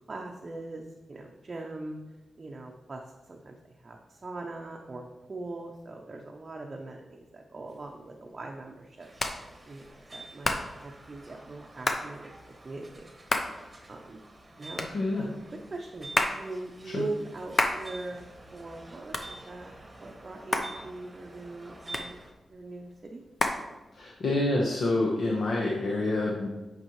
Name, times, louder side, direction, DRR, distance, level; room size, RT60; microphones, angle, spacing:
voice 1, 0.1-2.0 2.4-9.1 9.6-12.3 12.6-13.6 13.9-14.2 14.6-14.9 15.1-18.2 18.5-19.7 20.0-22.2 22.5-23.2, right 2 dB, 35° right, 0 dB, 0.6 m, -41 dB
Hands, 7.7-24.4, left 2 dB, 45° left, 0.7 m, -34 dB
sound 1, 9.0-22.3, right 2 dB, 20° right, 1.1 m, -49 dB
voice 2, 14.9-15.3 16.8-17.0 23.9-26.5, left 2 dB, 70° left, -3 dB, 1.1 m, -27 dB
9.1 x 5.3 x 3.1 m, 1.1 s
wide cardioid pair, 110°, 0 cm